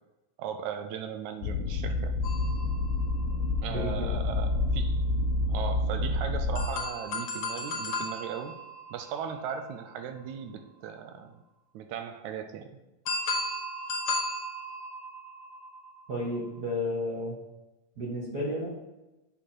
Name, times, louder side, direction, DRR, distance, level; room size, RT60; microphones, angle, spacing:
voice 1, 0.4-2.1 3.6-5.0 5.5-8.6 8.9-11.3 11.7-12.8, right 7 dB, 75° right, 8 dB, 1.8 m, -37 dB
sound 1, 1.4-6.7, left 2 dB, 80° left, 2.0 m, -28 dB
sound 2, 2.2-4.0 6.6-10.5 13.1-16.5, left 2 dB, 55° left, 1.7 m, -36 dB
voice 2, 3.7-4.2 16.1-17.4 18.0-18.7, left 1 dB, 45° right, -5 dB, 1.3 m, -32 dB
8.3 x 5.6 x 4.4 m, 1.0 s
omnidirectional pair, 3.8 m